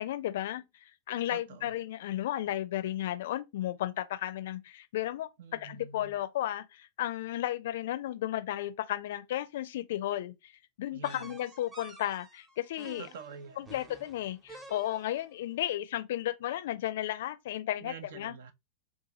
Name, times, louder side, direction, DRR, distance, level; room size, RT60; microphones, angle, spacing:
voice 1, 0.0-10.5 10.8-13.1 13.6-18.3, left 13 dB, 55° left, 0.4 m, -34 dB
voice 2, 1.3-1.7 5.4-6.2 10.9-11.4 13.0-13.9 17.8-18.5, right 5 dB, 60° right, 0.6 m, -47 dB
sound 1, 11.0-15.3, right 3 dB, 15° right, 0.9 m, -51 dB
2.7 x 2.4 x 3.9 m
figure-of-eight pair, 90°, 0 cm